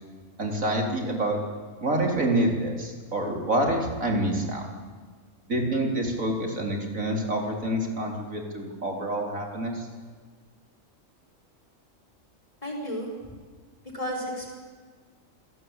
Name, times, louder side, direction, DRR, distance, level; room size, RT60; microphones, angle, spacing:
voice 1, 0.4-1.4 1.8-4.6 5.5-9.9, right 1 dB, 80° right, 1 dB, 4.3 m, -27 dB
voice 2, 12.6-13.3 13.9-14.5, equal, 25° left, 1 dB, 6.0 m, -33 dB
26.5 x 18.0 x 9.0 m, 1.5 s
omnidirectional pair, 1.4 m